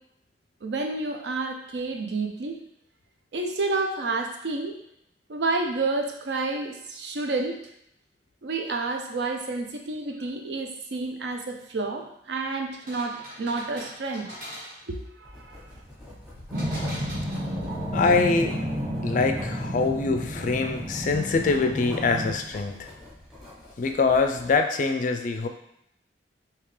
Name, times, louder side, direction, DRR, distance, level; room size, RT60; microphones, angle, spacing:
voice 1, 0.6-2.6 3.3-4.7 5.3-7.6 8.4-14.3 14.9-15.6, right 3 dB, 70° right, 4 dB, 0.5 m, -30 dB
sound 1, 12.7-15.0 16.5-17.8, equal, 45° right, 1.3 m, -42 dB
Writing, 15.2-24.6, left 1 dB, ahead, 1.1 m, -45 dB
sound 2, 16.5-22.3, equal, 25° right, 0.7 m, -31 dB
voice 2, 17.9-18.6 19.0-22.9 23.8-25.5, left 4 dB, 45° left, 6 dB, 0.3 m, -24 dB
3.5 x 2.8 x 3.2 m, 0.76 s
head